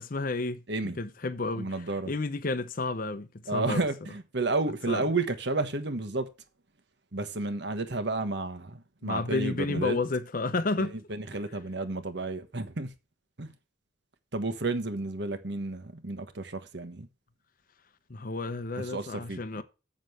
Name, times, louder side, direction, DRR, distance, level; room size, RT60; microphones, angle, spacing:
voice 1, 0.0-0.6 1.0-1.7 2.1-3.8 4.9-5.0 9.0-10.9 18.1-19.6, left 3 dB, 45° left, 0.7 m, -31 dB
voice 2, 1.5-2.1 3.5-6.3 7.1-10.0 10.8-12.9 13.4-13.5 14.3-17.1 18.8-19.4, right 2 dB, 60° right, 1.3 m, -31 dB
7.7 x 6.4 x 6.5 m
head